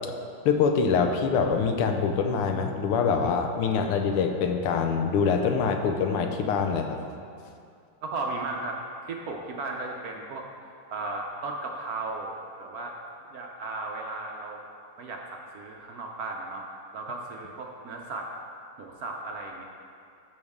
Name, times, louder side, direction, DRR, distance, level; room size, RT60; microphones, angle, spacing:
voice 1, 0.4-7.0, left 5 dB, 90° left, 5 dB, 1.7 m, -24 dB
voice 2, 8.0-8.8 9.0-10.5 10.9-12.3 12.6-13.0 13.3-14.7 15.0-18.3 18.8-19.6, right 3 dB, 65° right, 0 dB, 0.9 m, -35 dB
14.0 x 5.4 x 3.6 m, 2.4 s
omnidirectional pair, 2.4 m